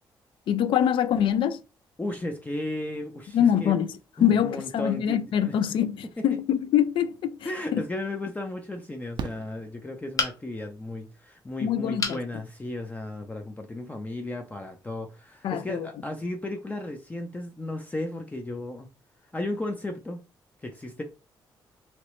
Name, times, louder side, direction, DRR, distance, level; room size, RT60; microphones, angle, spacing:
voice 1, 0.5-1.6 3.3-7.4 7.7-7.8 11.6-12.2 15.4-15.9, left 9 dB, 80° left, 0.4 m, -24 dB
voice 2, 2.0-3.8 4.2-5.5 6.2-6.3 7.4-18.9 19.3-20.2 20.6-21.0, left 2 dB, 20° left, 0.5 m, -34 dB
Fireworks, 9.2-10.5 12.2-12.3 12.5-12.6, right 6 dB, 60° right, 0.4 m, -39 dB
sound 1, 10.2-10.7 12.0-12.3 12.8-12.9 13.3-13.4, left 4 dB, 40° left, 0.9 m, -29 dB
3.0 x 2.9 x 3.0 m
cardioid pair, 95°, 9 cm